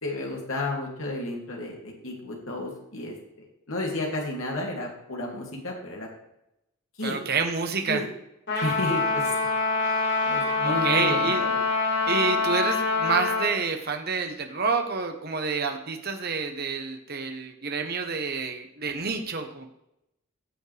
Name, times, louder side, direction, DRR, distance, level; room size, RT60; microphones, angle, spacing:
voice 1, 0.0-6.1 7.0-7.2 7.9-8.1 8.6-9.3 10.2-11.5, left 2 dB, 70° left, -1 dB, 2.6 m, -32 dB
voice 2, 7.0-8.0 10.6-11.4 12.1-19.7, right 5 dB, 45° right, 5 dB, 1.0 m, -28 dB
Trumpet, 8.5-13.5, left 4 dB, 55° left, 4.4 m, -25 dB
15.0 x 7.1 x 3.4 m, 0.84 s
head